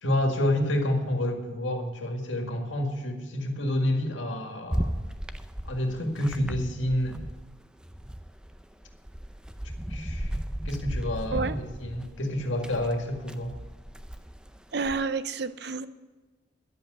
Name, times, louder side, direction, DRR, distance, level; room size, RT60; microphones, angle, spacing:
voice 1, 0.0-5.0 5.7-7.2 9.9-10.3 10.7-13.5, left 1 dB, 85° left, 4 dB, 2.0 m, -29 dB
sound 1, 4.7-7.5 7.8-15.0, equal, 5° right, 0.5 m, -35 dB
voice 2, 14.7-15.9, right 4 dB, 60° right, 14 dB, 0.6 m, -29 dB
11.0 x 7.8 x 7.9 m, 1.3 s
head